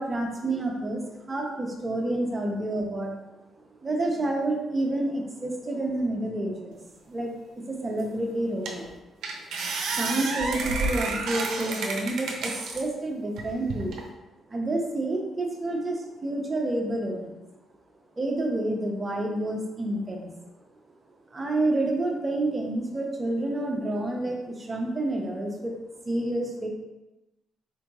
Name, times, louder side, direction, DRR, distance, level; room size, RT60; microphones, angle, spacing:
voice 1, 0.0-3.1 3.8-6.8 7.1-7.3 7.6-8.9 10.0-14.0 14.5-17.4 18.2-20.3 21.3-25.7 26.1-26.7, right 2 dB, 30° right, 0 dB, 0.9 m, -29 dB
sound 1, 8.0-8.1 8.7-8.9 9.2-12.8 13.4-14.0, right 3 dB, 80° right, 0.7 m, -30 dB
4.4 x 3.3 x 3.0 m, 1.0 s
cardioid pair, 90°, 0 cm